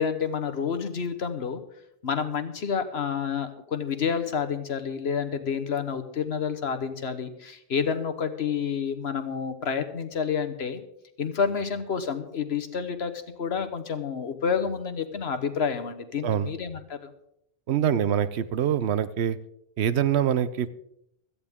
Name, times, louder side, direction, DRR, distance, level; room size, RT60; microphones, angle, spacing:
voice 1, 0.0-1.6 2.0-10.8 11.2-13.1 13.4-17.1, left 6 dB, 70° left, 9 dB, 1.4 m, -29 dB
voice 2, 17.7-19.4 19.8-20.7, right 9 dB, 80° right, 15 dB, 0.9 m, -24 dB
16.5 x 13.5 x 3.6 m, 0.78 s
omnidirectional pair, 1.1 m